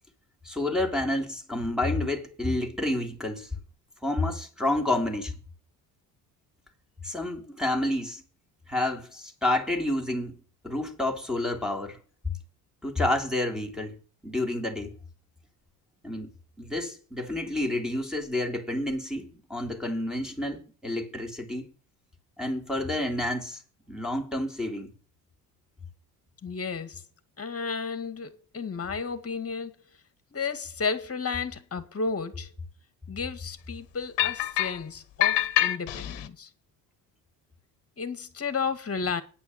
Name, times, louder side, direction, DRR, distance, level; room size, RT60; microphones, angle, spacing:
voice 1, 0.4-3.5 4.0-5.3 7.0-8.2 8.7-10.4 10.6-12.0 12.8-13.9 14.2-14.9 16.0-16.3 16.6-21.7 22.4-23.6 23.9-24.9, left 1 dB, ahead, 3.6 m, -29 dB
voice 2, 26.4-27.0 27.4-29.8 30.3-32.5 33.1-36.5 38.0-39.2, left 5 dB, 30° left, 2.2 m, -33 dB
sound 1, 34.2-34.8 35.2-36.3, left 14 dB, 60° left, 1.3 m, -25 dB
10.0 x 5.7 x 8.0 m
hypercardioid pair, 65°, 47 cm